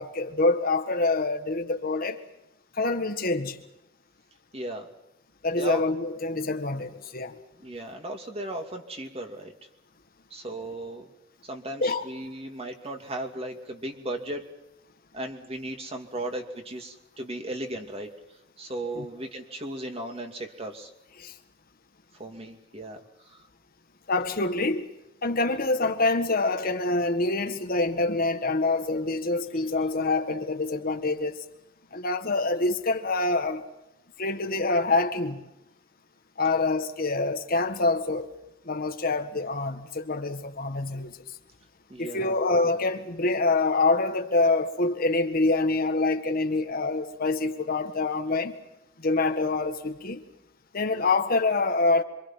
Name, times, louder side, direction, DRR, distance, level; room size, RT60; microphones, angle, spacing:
voice 1, 0.0-2.2 2.7-3.6 5.4-7.4 11.8-12.0 18.9-19.0 21.2-21.3 24.1-24.8 25.2-31.4 31.9-33.6 34.2-35.4 36.4-38.3 38.6-41.2 42.0-48.6 49.0-50.2 50.7-52.0, left 3 dB, 50° left, 1.6 m, -26 dB
voice 2, 4.5-4.9 5.6-5.8 7.6-9.5 10.3-11.1 11.5-14.5 15.1-18.1 18.6-20.9 22.2-23.4 41.9-42.4, right 1 dB, 30° right, 2.7 m, -36 dB
27.0 x 25.0 x 5.8 m
head